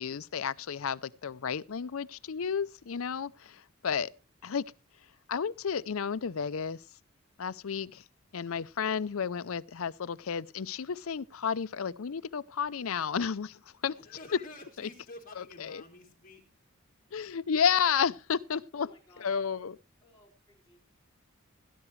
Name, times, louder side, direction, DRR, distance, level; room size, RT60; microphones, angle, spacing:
voice 1, 0.0-4.1 4.4-4.6 5.3-6.8 7.4-8.0 8.3-13.9 14.8-14.9 15.4-15.8 17.1-18.9 19.2-19.8, left 7 dB, 70° left, 0.5 m, -32 dB
voice 2, 14.0-16.4, left 2 dB, 40° left, 3.4 m, -49 dB
voice 3, 18.7-19.6 20.0-20.9, left 1 dB, 15° left, 4.6 m, -60 dB
17.5 x 11.0 x 3.2 m
head